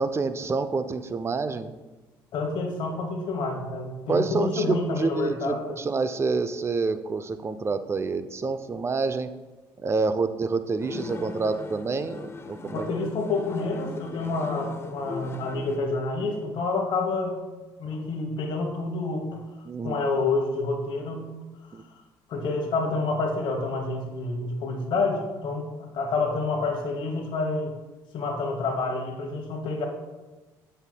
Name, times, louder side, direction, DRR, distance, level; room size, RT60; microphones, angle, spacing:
voice 1, 0.0-1.7 4.1-9.3 9.8-12.9 19.7-20.0 21.7-21.8, right 4 dB, 25° right, 11 dB, 0.4 m, -27 dB
voice 2, 2.3-5.8 12.6-17.4 17.8-19.4 19.8-21.3 22.3-27.7 28.1-29.8, left 3 dB, 60° left, 2 dB, 1.0 m, -28 dB
sound 1, 10.8-15.8, left 4 dB, 25° left, 0.5 m, -39 dB
7.9 x 5.5 x 2.2 m, 1.2 s
supercardioid pair, 75°, 10 cm